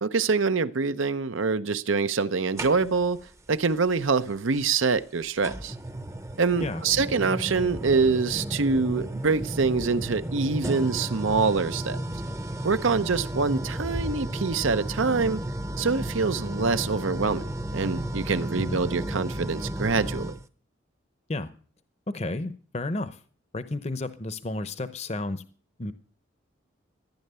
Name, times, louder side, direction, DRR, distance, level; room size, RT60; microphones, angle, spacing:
voice 1, 0.0-3.2 3.5-5.7 6.4-12.0 12.6-15.4 15.8-20.4, right 4 dB, 80° right, 0.8 m, -25 dB
sound 1, 2.6-3.2 4.6-4.7 5.4-20.4, right 1 dB, 15° right, 0.7 m, -33 dB
voice 2, 22.1-23.2 23.5-25.4 25.8-25.9, left 2 dB, 30° left, 0.7 m, -32 dB
14.5 x 10.5 x 6.8 m
head